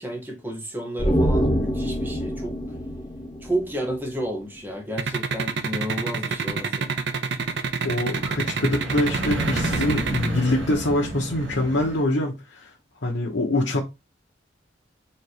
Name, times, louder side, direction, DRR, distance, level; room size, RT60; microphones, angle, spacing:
voice 1, 0.0-2.6 3.4-6.9, right 1 dB, 10° right, 1.0 m, -31 dB
sound 1, 1.0-4.4 4.7-4.8, equal, 25° left, 0.8 m, -26 dB
sound 2, 5.0-10.3, right 5 dB, 65° right, 0.5 m, -26 dB
sound 3, 6.3-12.0, right 1 dB, 85° right, 1.3 m, -32 dB
voice 2, 7.8-12.7 13.0-13.8, left 1 dB, 90° left, 0.9 m, -24 dB
4.2 x 2.9 x 3.2 m
head